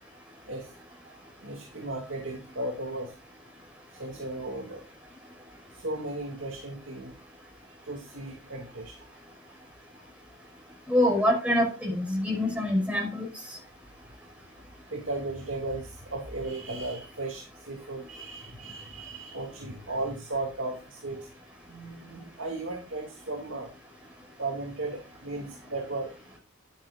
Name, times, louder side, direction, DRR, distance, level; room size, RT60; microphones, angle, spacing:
voice 1, 1.0-3.1 3.9-4.9 5.7-7.1 7.7-9.1 10.0-10.1 14.9-21.3 21.6-23.7 24.4-26.2, right 2 dB, 65° right, 1 dB, 2.6 m, -36 dB
voice 2, 10.9-13.3, left 1 dB, 5° right, 0 dB, 5.6 m, -25 dB
11.0 x 10.0 x 2.6 m, 0.30 s
head